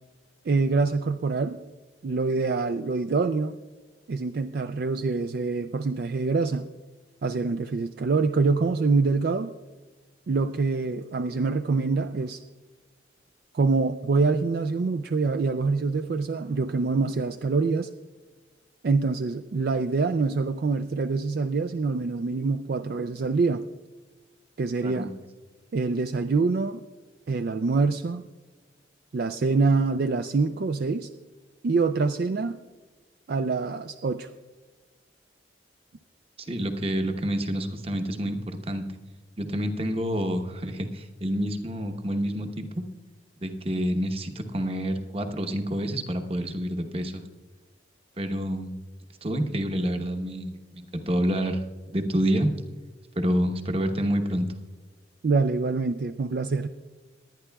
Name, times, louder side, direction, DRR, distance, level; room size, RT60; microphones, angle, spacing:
voice 1, 0.5-1.6 2.0-3.6 4.1-6.7 7.2-9.5 10.3-12.4 13.5-17.9 18.8-23.6 24.6-25.1 25.7-26.8 27.3-28.2 29.1-31.1 31.6-32.6 33.3-34.3 55.2-56.7, right 4 dB, 55° right, 8 dB, 0.4 m, -25 dB
voice 2, 36.4-38.9 39.4-42.8 43.4-47.2 48.2-48.7 49.2-51.6 51.9-52.5 53.2-54.5, equal, 30° right, 6 dB, 0.9 m, -28 dB
19.5 x 11.0 x 2.3 m, 1.3 s
head